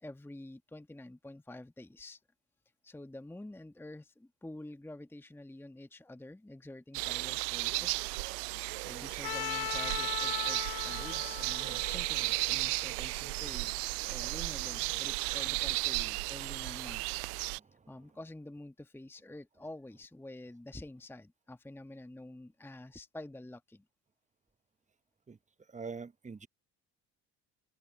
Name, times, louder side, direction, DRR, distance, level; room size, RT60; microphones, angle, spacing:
voice 1, 0.0-2.2 2.8-8.1 8.8-13.7 14.1-17.1 17.9-23.8, left 1 dB, 5° left, 1.3 m, -48 dB
sound 1, 6.9-17.6, right 31 dB, 65° right, 0.6 m, -34 dB
Trumpet, 9.2-13.3, left 15 dB, 50° left, 1.3 m, -40 dB
voice 2, 25.7-26.5, right 5 dB, 15° right, 1.0 m, -43 dB
hypercardioid pair, 60°, 49 cm